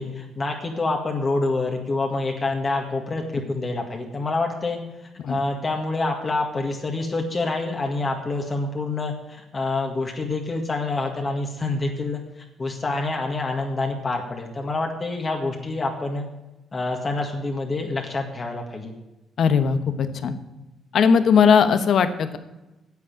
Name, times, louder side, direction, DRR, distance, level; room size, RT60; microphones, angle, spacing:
voice 1, 0.0-4.8 5.3-12.2 12.6-16.3 16.7-18.9, left 3 dB, 35° left, 2 dB, 1.9 m, -27 dB
voice 2, 19.4-20.3 20.9-22.4, left 6 dB, 65° left, 10 dB, 1.1 m, -18 dB
9.7 x 7.8 x 8.9 m, 1.0 s
cardioid pair, 90°, 0 cm